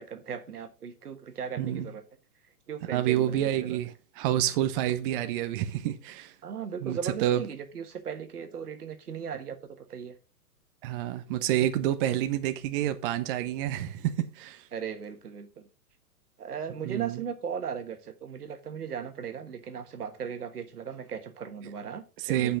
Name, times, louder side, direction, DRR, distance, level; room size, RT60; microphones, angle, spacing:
voice 1, 0.0-2.0 2.7-3.8 6.4-10.1 14.7-15.7 16.4-22.6, right 7 dB, 80° right, 1.6 m, -37 dB
voice 2, 2.9-6.3 6.8-7.4 10.8-14.6 16.8-17.2 22.2-22.6, right 12 dB, 35° right, 0.8 m, -28 dB
8.0 x 5.7 x 5.1 m
hypercardioid pair, 120°, 45 cm